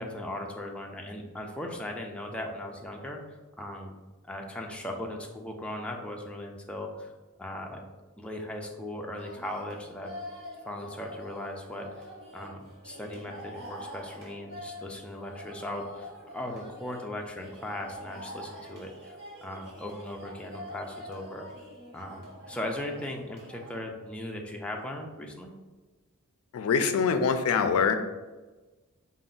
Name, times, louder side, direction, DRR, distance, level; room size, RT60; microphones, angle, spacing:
voice 1, 0.0-4.0 4.3-7.1 7.4-7.8 8.2-10.1 10.6-12.1 12.3-21.5 21.9-25.5, left 1 dB, 5° left, 0 dB, 0.4 m, -38 dB
sound 1, 9.2-23.8, equal, 50° right, 1.3 m, -45 dB
voice 2, 26.5-27.9, left 6 dB, 75° left, 9 dB, 0.3 m, -24 dB
4.4 x 2.1 x 3.8 m, 1.2 s
head